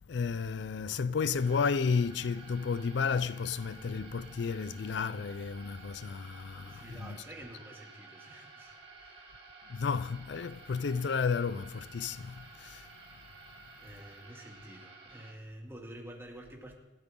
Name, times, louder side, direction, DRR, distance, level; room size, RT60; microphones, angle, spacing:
voice 1, 0.1-7.3 9.7-12.9, left 5 dB, 70° left, 0.4 m, -32 dB
sound 1, 1.1-15.3, right 3 dB, 35° right, 3.6 m, -53 dB
voice 2, 6.6-9.3 13.8-16.8, right 1 dB, 15° right, 2.5 m, -49 dB
28.0 x 13.0 x 3.8 m
head